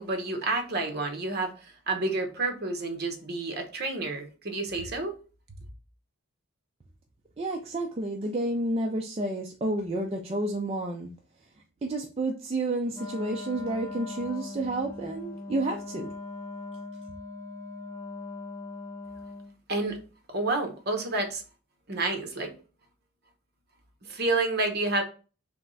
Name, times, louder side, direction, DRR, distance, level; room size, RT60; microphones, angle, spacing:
voice 1, 0.0-5.2 19.7-20.0 20.3-21.4 21.9-22.5 24.1-25.0, right 2 dB, 45° right, 1.0 m, -29 dB
voice 2, 7.4-11.1 11.8-16.1, right 2 dB, 25° right, 0.4 m, -30 dB
Wind instrument woodwind instrument, 12.9-19.6, left 3 dB, 10° left, 0.7 m, -40 dB
3.4 x 3.2 x 3.9 m
head